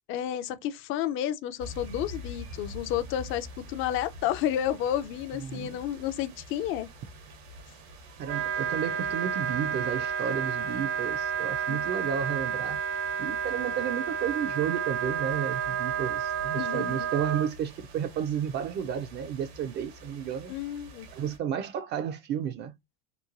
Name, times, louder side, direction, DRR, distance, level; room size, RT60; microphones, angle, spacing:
voice 1, 0.1-6.9 11.7-11.8 16.5-17.1 20.5-21.1, left 11 dB, 40° left, 0.4 m, -31 dB
sound 1, 1.6-21.4, left 1 dB, 80° right, 1.0 m, -47 dB
voice 2, 5.4-5.8 8.2-12.8 13.2-20.5 21.1-22.8, right 8 dB, 35° right, 0.4 m, -32 dB
Wind instrument woodwind instrument, 8.2-17.5, right 7 dB, 65° right, 0.7 m, -31 dB
3.0 x 2.2 x 2.4 m
supercardioid pair, 105°, 31 cm